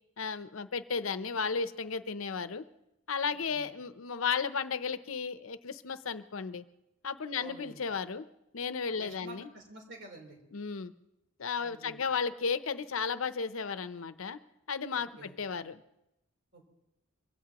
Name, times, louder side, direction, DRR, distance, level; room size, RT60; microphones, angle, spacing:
voice 1, 0.2-2.6 3.1-6.6 7.0-8.3 8.5-9.5 10.5-10.9 11.4-14.4 14.7-15.8, left 5 dB, 85° left, 12 dB, 0.7 m, -34 dB
voice 2, 7.4-7.8 8.9-10.4 11.5-12.0 15.0-15.3 16.5-16.7, right 2 dB, 60° right, 0 dB, 3.8 m, -49 dB
23.5 x 16.0 x 3.0 m, 0.86 s
head